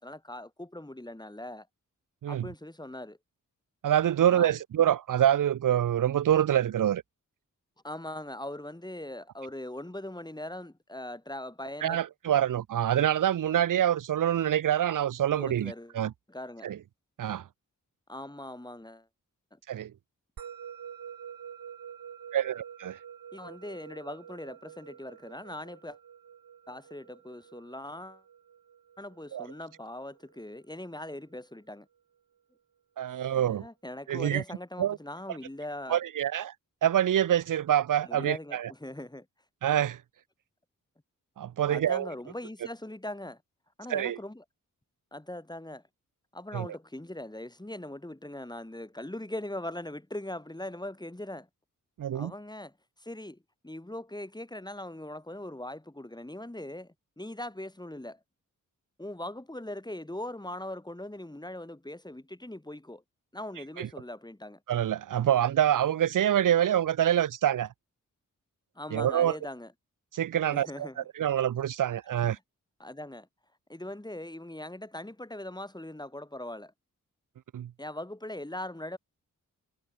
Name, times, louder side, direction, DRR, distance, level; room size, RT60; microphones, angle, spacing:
voice 1, 0.0-1.7 2.3-3.2 4.3-4.5 7.8-12.0 15.3-15.9 16.3-16.7 18.1-19.1 19.5-19.6 23.3-26.0 26.7-28.2 29.0-31.9 33.1-36.0 38.0-39.3 41.7-43.4 43.8-44.4 45.1-45.8 46.3-51.5 52.1-52.7 53.0-58.2 59.0-63.0 63.3-64.6 68.8-69.7 70.5-71.0 72.8-73.3 73.7-76.7 77.8-79.0, left 1 dB, 10° left, 5.7 m, -40 dB
voice 2, 3.8-7.0 11.8-16.1 16.6-16.8 17.2-17.5 19.7-19.9 22.3-23.0 29.3-29.5 33.0-33.7 34.1-34.4 34.8-35.0 35.9-36.5 36.8-38.7 39.6-40.0 41.4-42.1 43.9-44.2 46.5-46.7 52.0-52.3 63.8-63.9 64.7-67.7 68.9-69.3 70.1-70.9 71.2-72.4 77.5-77.7, right 10 dB, 70° right, 0.7 m, -26 dB
Musical instrument, 20.4-31.0, right 8 dB, 85° right, 4.5 m, -48 dB
cardioid pair, 65°, 33 cm